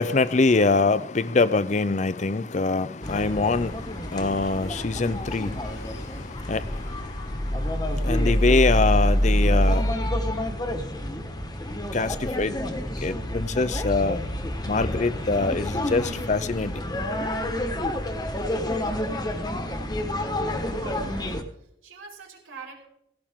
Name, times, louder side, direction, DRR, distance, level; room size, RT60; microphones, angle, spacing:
voice 1, 0.0-7.4 7.9-9.9 11.9-12.6 13.0-14.2 14.7-16.7, left 3 dB, 35° left, 0.5 m, -24 dB
sound 1, 3.0-21.4, equal, 20° left, 1.3 m, -27 dB
voice 2, 20.8-22.9, right 4 dB, 90° right, 4.7 m, -43 dB
17.0 x 16.5 x 3.7 m
head